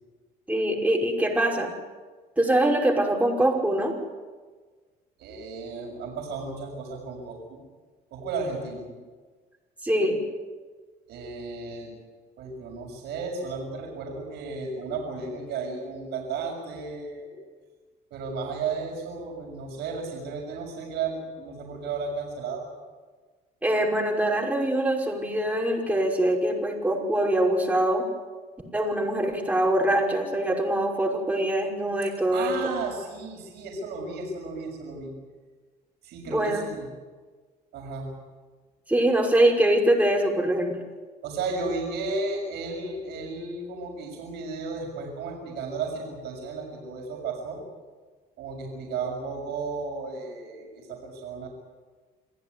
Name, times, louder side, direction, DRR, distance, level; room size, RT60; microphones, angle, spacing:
voice 1, 0.5-1.7 2.4-3.9 9.8-10.2 23.6-28.0 28.7-32.5 36.3-36.7 38.9-40.8, right 1 dB, 10° right, 0 dB, 5.7 m, -23 dB
voice 2, 5.2-7.6 8.1-8.9 11.1-12.0 12.4-17.4 18.1-22.7 32.3-35.1 36.0-36.9 37.7-38.1 41.2-47.6 48.4-51.5, right 4 dB, 80° right, 0 dB, 6.6 m, -34 dB
27.5 x 15.5 x 9.8 m, 1.4 s
cardioid pair, 110°, 17 cm